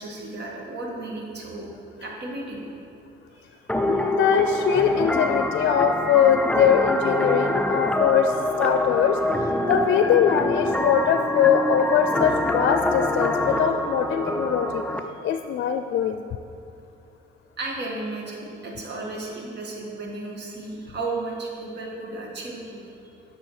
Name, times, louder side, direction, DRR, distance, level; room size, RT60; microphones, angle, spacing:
voice 1, 0.0-1.7 2.0-2.7 3.7-3.8 9.6-9.7 15.1-15.4 17.6-22.8, right 2 dB, 60° right, -1 dB, 1.9 m, -34 dB
sound 1, 3.7-15.0, left 1 dB, 5° left, 0.6 m, -25 dB
voice 2, 3.8-8.3 8.6-9.2 9.7-14.8 15.2-16.2, left 8 dB, 70° left, 7 dB, 0.5 m, -22 dB
10.5 x 6.2 x 4.9 m, 2.6 s
cardioid pair, 90°, 20 cm